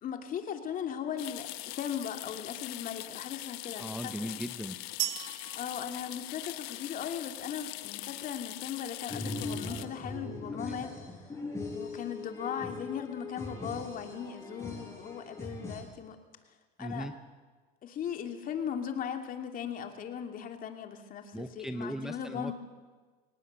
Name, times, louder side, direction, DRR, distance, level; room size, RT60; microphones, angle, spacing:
voice 1, 0.0-4.3 5.5-10.9 11.7-16.2 16.8-17.1 17.8-22.5, left 8 dB, 45° left, 5 dB, 2.6 m, -38 dB
sound 1, 1.2-9.9, left 20 dB, 80° left, 1.0 m, -42 dB
voice 2, 3.7-4.8 10.6-10.9 16.8-17.1 21.3-22.5, equal, ahead, 7 dB, 1.0 m, -38 dB
sound 2, 5.0-6.9, right 18 dB, 65° right, 1.0 m, -38 dB
sound 3, 9.1-15.8, left 2 dB, 15° left, 6.9 m, -40 dB
24.5 x 18.0 x 8.3 m, 1.4 s
cardioid pair, 130°, 20 cm